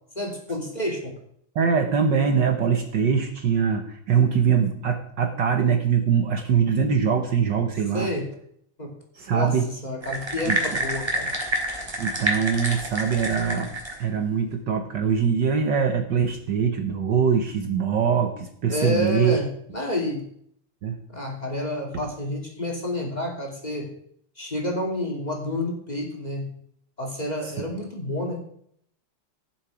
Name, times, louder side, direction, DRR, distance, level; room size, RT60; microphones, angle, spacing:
voice 1, 0.1-1.2 7.9-8.3 8.8-8.9 9.3-11.3 18.7-20.3 21.1-23.9 24.4-26.5 27.0-28.4, left 1 dB, 20° left, 0 dB, 2.8 m, -29 dB
voice 2, 1.5-8.1 9.2-9.7 10.5-10.8 12.0-13.7 14.0-19.4 20.8-21.0 27.4-27.5, right 6 dB, 60° right, 6 dB, 1.6 m, -23 dB
sound 1, 10.0-14.1, right 1 dB, 10° right, 3.1 m, -27 dB
16.5 x 7.5 x 4.8 m, 0.66 s
omnidirectional pair, 2.4 m